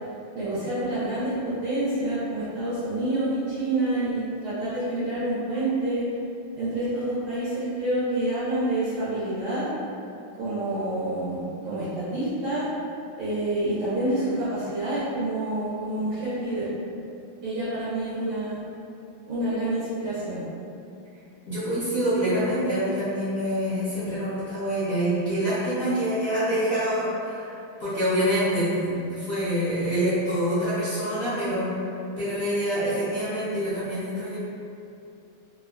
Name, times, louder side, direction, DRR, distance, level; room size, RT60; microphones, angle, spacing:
voice 1, 0.3-6.0 6.5-9.7 10.4-12.7 13.2-16.7 17.4-18.6 19.3-20.4, right 1 dB, 90° right, -12 dB, 1.7 m, -28 dB
voice 2, 21.5-34.4, equal, 55° left, -13 dB, 0.6 m, -26 dB
3.7 x 2.2 x 2.4 m, 2.6 s
omnidirectional pair, 2.2 m